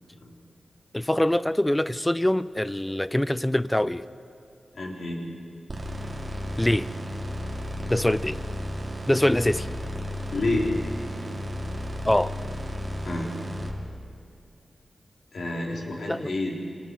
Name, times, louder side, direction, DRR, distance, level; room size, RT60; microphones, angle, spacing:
voice 1, 0.9-4.1 6.6-6.9 7.9-8.4 9.1-9.7 12.0-12.4 16.1-16.3, left 1 dB, 10° left, 16 dB, 0.5 m, -24 dB
voice 2, 4.7-5.2 10.3-10.7 13.0-13.3 15.3-16.5, left 2 dB, 70° left, -2 dB, 4.1 m, -29 dB
sound 1, 5.7-13.7, equal, 35° right, 2.7 m, -33 dB
29.0 x 25.5 x 4.9 m, 2.5 s
wide cardioid pair, 100°, 0 cm